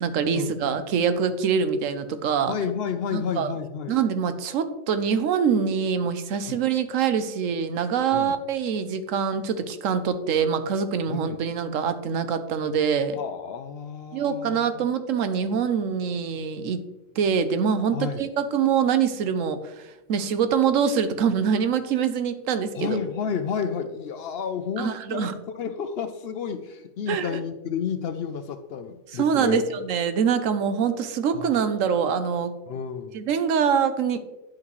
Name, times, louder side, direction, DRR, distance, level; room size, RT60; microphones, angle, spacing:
voice 1, 0.0-2.5 3.1-3.5 3.9-13.2 14.1-16.8 17.2-23.0 24.8-25.3 27.1-27.4 29.1-32.5 33.1-34.2, right 7 dB, 85° right, 11 dB, 1.1 m, -24 dB
voice 2, 2.5-4.0 6.5-6.6 8.1-8.4 11.1-11.4 13.1-14.9 17.9-18.3 22.7-25.3 25.5-29.7 31.3-31.6 32.7-33.1, left 7 dB, 65° left, 9 dB, 0.7 m, -31 dB
10.0 x 5.8 x 3.1 m, 1.0 s
omnidirectional pair, 1.3 m